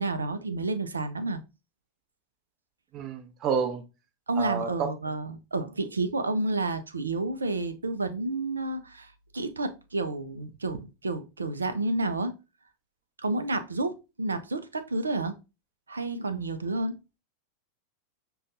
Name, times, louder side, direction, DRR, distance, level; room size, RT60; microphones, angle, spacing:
voice 1, 0.0-1.4 4.3-12.4 13.2-15.4 15.9-17.0, right 2 dB, 75° right, 0.5 m, -30 dB
voice 2, 2.9-3.8 4.4-4.9, right 6 dB, 35° right, 0.8 m, -29 dB
6.3 x 2.3 x 2.6 m
figure-of-eight pair, 90°, 0 cm